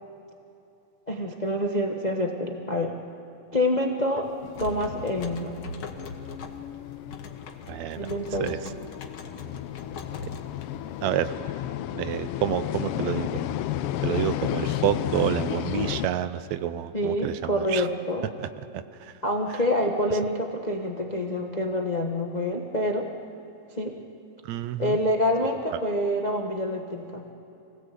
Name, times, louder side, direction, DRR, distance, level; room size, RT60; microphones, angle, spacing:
voice 1, 1.1-3.0 3.5-4.3 4.6-5.6 8.0-8.7 16.9-18.3 19.2-23.1 23.7-24.0 24.8-27.2, left 1 dB, 70° left, 2 dB, 0.4 m, -27 dB
sound 1, 4.2-11.1, left 3 dB, 50° left, 1.5 m, -41 dB
sound 2, 4.4-16.1, left 12 dB, 90° left, 1.2 m, -33 dB
voice 2, 7.7-8.1 8.4-8.7 11.0-11.3 11.9-13.4 14.0-17.9 18.4-19.1 20.1-20.2 24.4-25.0, right 12 dB, 75° right, 13 dB, 1.9 m, -29 dB
24.5 x 17.5 x 8.4 m, 2.9 s
omnidirectional pair, 3.3 m